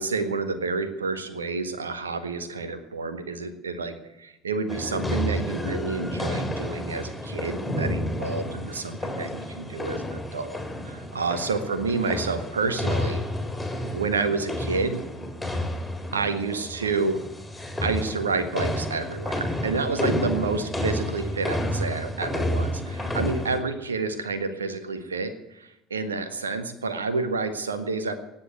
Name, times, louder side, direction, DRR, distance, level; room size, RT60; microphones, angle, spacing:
voice 1, 0.0-10.6 10.8-13.2 13.9-15.1 16.1-17.2 17.8-28.1, right 4 dB, 80° right, 10 dB, 1.6 m, -29 dB
sound 1, 4.7-23.6, left 1 dB, 5° left, 4.1 m, -30 dB
18.5 x 7.6 x 9.2 m, 0.91 s
figure-of-eight pair, 60°, 0 cm